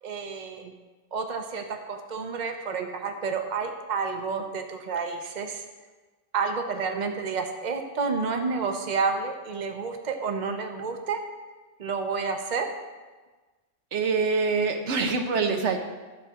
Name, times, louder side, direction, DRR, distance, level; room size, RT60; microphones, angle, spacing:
voice 1, 0.0-0.7 1.1-5.7 6.3-11.2 11.8-12.7, right 5 dB, 40° right, 5 dB, 0.9 m, -30 dB
voice 2, 13.9-15.8, right 4 dB, 80° right, 5 dB, 1.1 m, -25 dB
11.5 x 4.9 x 6.9 m, 1.3 s
omnidirectional pair, 1.2 m